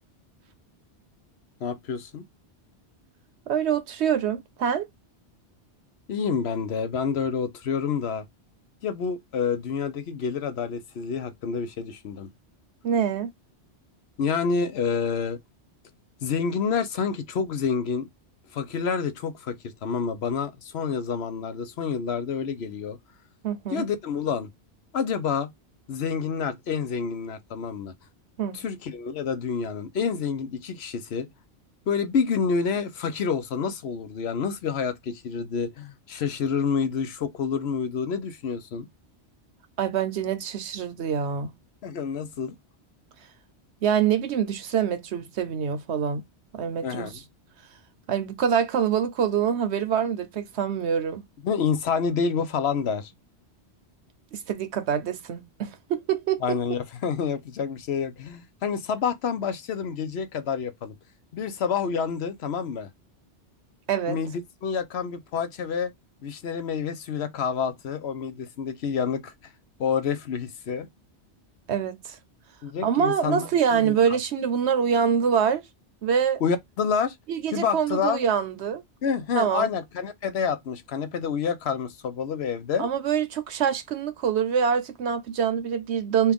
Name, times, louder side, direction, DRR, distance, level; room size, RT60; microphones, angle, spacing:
voice 1, 1.6-2.3 6.1-8.2 8.8-12.3 14.2-15.4 16.2-18.1 18.5-19.6 19.8-23.0 23.7-24.5 24.9-25.5 25.9-27.9 28.5-31.3 31.9-38.9 41.8-42.6 46.8-47.2 51.4-53.1 56.4-60.9 61.3-62.9 64.1-65.9 66.2-69.3 69.8-70.9 72.6-74.2 76.4-77.2 77.5-78.2 79.0-82.9, left 6 dB, 70° left, 0.9 m, -28 dB
voice 2, 3.5-4.9 12.8-13.3 23.4-23.8 28.4-28.6 39.8-41.5 43.8-46.2 46.5-47.1 48.1-51.2 54.3-56.6 63.9-64.2 71.7-72.2 72.8-75.6 76.0-76.4 77.3-78.8 79.3-79.7 82.8-86.3, right 7 dB, 75° right, 1.0 m, -25 dB
4.4 x 2.3 x 3.5 m
omnidirectional pair, 1.2 m